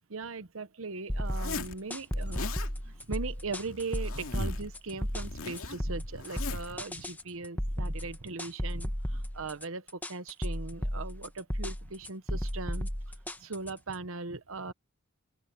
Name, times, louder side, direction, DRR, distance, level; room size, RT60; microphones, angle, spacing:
voice 1, 0.1-12.9 13.4-14.7, right 3 dB, 75° right, 1.0 m, -39 dB
sound 1, 1.1-13.9, equal, 10° left, 1.5 m, -34 dB
Zipper (clothing), 1.3-1.8 2.1-2.7 3.6-4.7 5.0-6.7, left 3 dB, 90° left, 2.3 m, -39 dB
open air
head